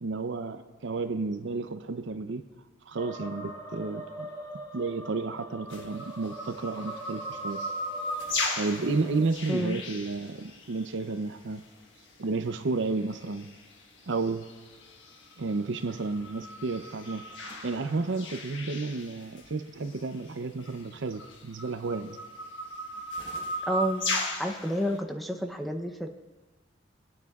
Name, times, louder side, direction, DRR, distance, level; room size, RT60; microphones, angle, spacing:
voice 1, 0.0-2.4 2.9-4.3 4.7-7.6 8.6-11.6 12.2-13.5 14.1-14.5 15.4-22.2, right 3 dB, 65° right, 9 dB, 0.6 m, -32 dB
sound 1, 3.0-9.3, right 1 dB, 15° left, 1.1 m, -43 dB
sound 2, 5.7-10.9 12.3-12.4 13.0-13.6 14.0-19.5 19.9-20.0 20.7-24.9, left 1 dB, 65° left, 1.3 m, -36 dB
voice 2, 9.5-9.8 23.7-24.1 24.4-26.1, equal, ahead, 4 dB, 0.6 m, -30 dB
21.0 x 9.3 x 2.4 m, 1.3 s
head